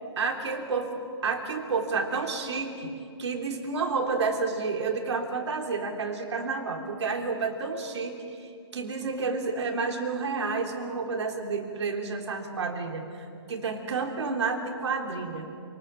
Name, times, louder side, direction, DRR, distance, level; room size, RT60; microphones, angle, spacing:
voice 1, 0.2-0.9 1.2-2.9 3.2-8.4 8.7-15.4, right 4 dB, 70° right, 3 dB, 3.4 m, -30 dB
28.0 x 19.5 x 7.7 m, 2.5 s
hypercardioid pair, 150°, 15 cm